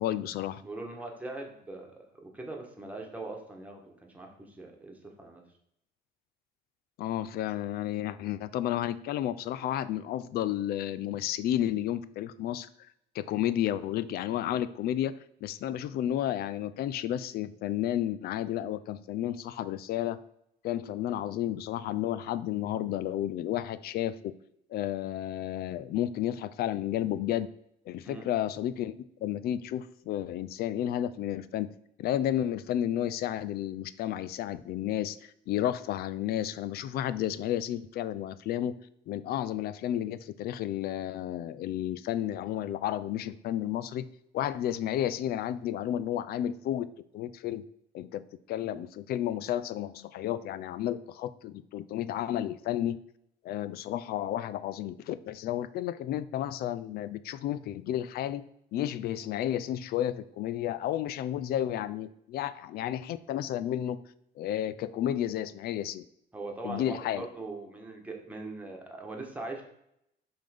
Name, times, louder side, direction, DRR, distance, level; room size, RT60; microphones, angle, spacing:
voice 1, 0.0-0.6 7.0-12.7 13.1-15.1 15.4-20.2 20.6-24.2 24.7-27.5 27.9-31.7 32.0-38.7 39.1-44.0 44.3-46.9 47.1-47.6 47.9-48.2 48.5-53.0 53.4-58.4 58.7-64.0 64.4-66.0 66.6-67.2, left 11 dB, 65° left, 15 dB, 0.4 m, -32 dB
voice 2, 0.6-5.4 28.0-28.3 66.3-69.6, right 2 dB, 10° right, 0 dB, 1.5 m, -41 dB
5.6 x 3.5 x 5.2 m, 0.76 s
cardioid pair, 110°, 17 cm